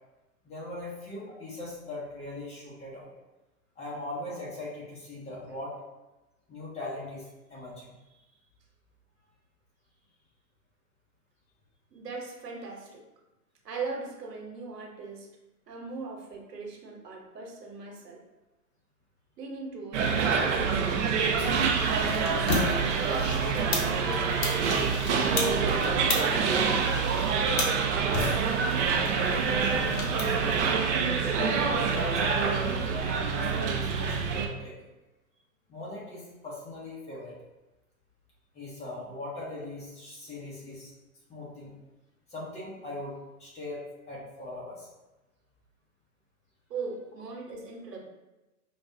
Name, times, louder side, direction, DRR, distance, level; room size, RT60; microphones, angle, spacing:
voice 1, 0.4-3.1 3.8-5.8 6.5-7.9 28.9-30.8 31.3-34.8 35.7-37.4 38.5-40.9 41.3-41.7 42.3-44.9, left 2 dB, 15° left, -5 dB, 0.6 m, -39 dB
voice 2, 11.9-13.0 13.6-15.3 15.7-18.2 19.4-21.1 21.7-22.5 22.9-24.7 25.2-26.8 31.2-31.4 46.7-48.0, right 3 dB, 80° right, 0 dB, 1.0 m, -39 dB
sound 1, 19.9-34.5, right 5 dB, 50° right, 0.6 m, -26 dB
sound 2, 21.4-30.6, left 3 dB, 45° left, 0.8 m, -35 dB
4.6 x 2.3 x 2.6 m, 1.0 s
hypercardioid pair, 115°, 48 cm